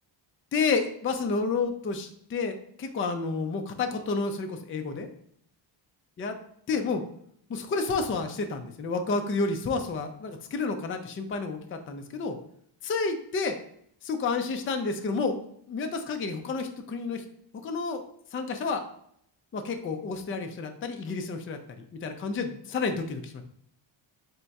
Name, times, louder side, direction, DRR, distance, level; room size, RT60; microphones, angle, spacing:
voice 1, 0.5-5.1 6.2-6.4 6.7-7.0 7.5-12.4 12.8-13.6 14.0-15.4 15.7-17.2 17.6-18.0 18.3-18.8 19.5-23.4, left 4 dB, 30° left, 5 dB, 0.4 m, -30 dB
3.6 x 2.2 x 4.0 m, 0.69 s
cardioid pair, 100°, 48 cm